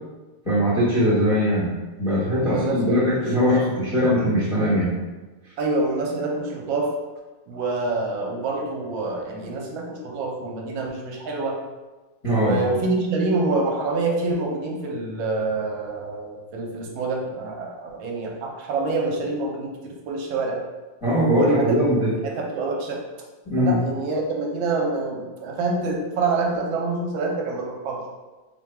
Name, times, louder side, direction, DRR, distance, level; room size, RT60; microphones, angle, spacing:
voice 1, 0.4-4.9 12.2-12.6 21.0-22.1 23.5-23.8, equal, 45° left, -10 dB, 0.4 m, -21 dB
voice 2, 2.4-3.8 5.6-6.9 7.5-11.6 12.4-20.6 21.3-21.7 22.2-23.0 23.6-28.0, right 3 dB, 75° right, 0 dB, 1.3 m, -26 dB
3.5 x 2.2 x 4.4 m, 1.2 s
omnidirectional pair, 2.4 m